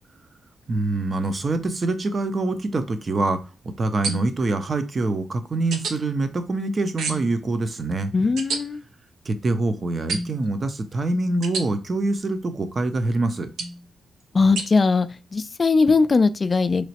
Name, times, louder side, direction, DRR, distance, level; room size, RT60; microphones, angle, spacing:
voice 1, 0.7-3.4 3.6-8.1 9.2-13.5, right 2 dB, 40° right, 0.5 m, -25 dB
sound 1, 4.0-4.5 5.7-6.0 7.0-7.4 8.4-8.6 10.1-10.5 11.4-11.7 13.6-13.8 14.6-14.7, right 3 dB, 85° right, 0.6 m, -29 dB
voice 2, 8.1-8.8 14.3-15.1 15.3-16.9, left 4 dB, 35° left, 0.3 m, -19 dB
3.1 x 2.9 x 2.8 m
cardioid pair, 100°, 0 cm